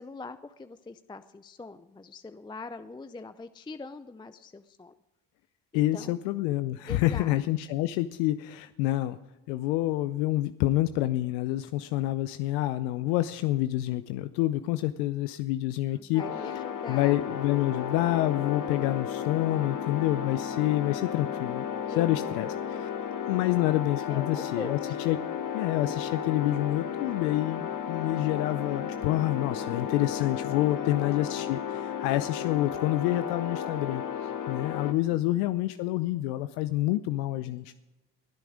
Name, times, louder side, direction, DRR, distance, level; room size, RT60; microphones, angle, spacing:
voice 1, 0.0-4.9 5.7-6.2 6.9-7.4 15.9-17.2 21.9-22.8 24.1-25.0 30.6-31.1, left 3 dB, 10° left, 11 dB, 0.5 m, -43 dB
voice 2, 5.7-9.2 9.5-16.2 16.9-22.9 23.3-25.2 25.5-37.7, left 15 dB, 85° left, 12 dB, 0.6 m, -28 dB
sound 1, 16.2-34.9, left 8 dB, 40° left, 1.5 m, -34 dB
20.5 x 9.2 x 5.0 m, 1.0 s
supercardioid pair, 70°, 49 cm